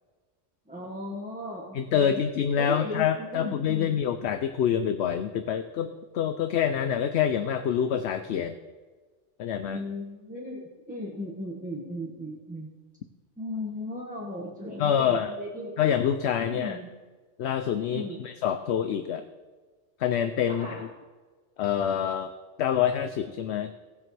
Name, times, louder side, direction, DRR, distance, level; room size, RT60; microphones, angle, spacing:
voice 1, 0.7-2.2 2.6-4.0 9.7-12.7 13.4-15.8 16.4-16.9 17.9-18.2 20.6-20.8, left 1 dB, 5° right, -5 dB, 1.7 m, -36 dB
voice 2, 1.7-8.6 9.4-9.8 14.8-15.3 15.8-16.8 17.4-19.2 20.0-20.9 21.6-22.3 22.6-23.7, left 8 dB, 70° left, 9 dB, 0.8 m, -26 dB
18.5 x 7.6 x 3.3 m, 1.4 s
omnidirectional pair, 1.2 m